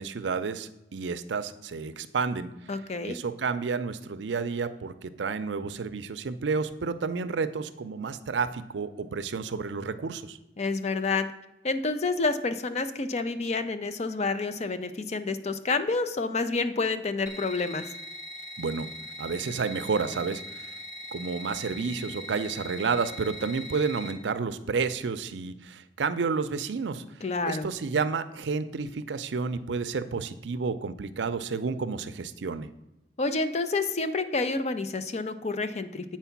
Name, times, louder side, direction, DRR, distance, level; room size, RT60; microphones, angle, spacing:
voice 1, 0.0-2.5 3.0-10.4 18.6-18.9 19.2-20.7 21.1-27.0 27.5-32.7, right 5 dB, 80° right, 12 dB, 0.5 m, -30 dB
voice 2, 2.7-3.2 10.6-11.3 11.6-17.8 27.2-27.7 33.2-36.2, left 3 dB, 40° left, 10 dB, 0.5 m, -29 dB
sound 1, 17.3-24.1, equal, 20° left, 1.3 m, -41 dB
8.1 x 4.5 x 5.8 m, 0.97 s
head